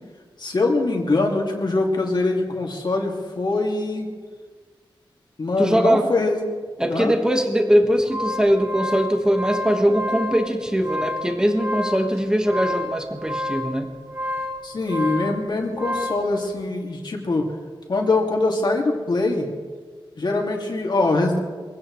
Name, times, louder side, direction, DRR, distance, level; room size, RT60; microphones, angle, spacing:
voice 1, 0.4-4.1 5.4-6.4 6.9-7.1 14.6-17.5 17.9-19.5 20.2-21.4, left 2 dB, 55° left, 0 dB, 2.5 m, -23 dB
voice 2, 5.6-6.0 6.8-13.9, equal, 10° right, 3 dB, 1.6 m, -21 dB
sound 1, 7.8-16.3, left 1 dB, 35° right, 5.8 m, -30 dB
23.5 x 16.5 x 3.3 m, 1.5 s
wide cardioid pair, 115°, 9 cm